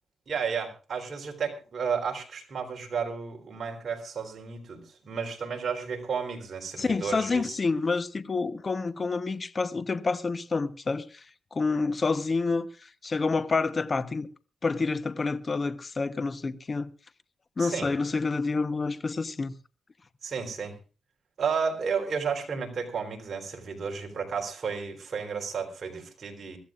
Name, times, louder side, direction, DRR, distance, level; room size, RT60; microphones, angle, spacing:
voice 1, 0.3-7.6 17.6-17.9 20.2-20.7 21.4-26.6, right 6 dB, 50° right, 3.7 m, -32 dB
voice 2, 6.8-11.2 11.5-14.3 14.6-16.9 17.6-19.5, left 4 dB, 35° left, 1.0 m, -28 dB
24.5 x 14.0 x 2.5 m
cardioid pair, 100°, 0 cm